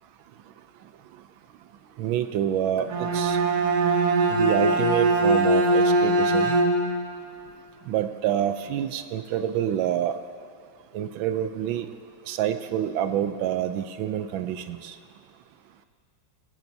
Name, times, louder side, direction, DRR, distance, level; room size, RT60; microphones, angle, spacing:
voice 1, 2.0-3.4 4.3-6.5 7.9-10.2 10.9-11.9 12.3-14.9, right 10 dB, 75° right, 9 dB, 1.3 m, -27 dB
Bowed string instrument, 2.8-7.1, right 2 dB, 60° right, 1.4 m, -21 dB
19.0 x 16.5 x 2.7 m, 2.3 s
omnidirectional pair, 2.2 m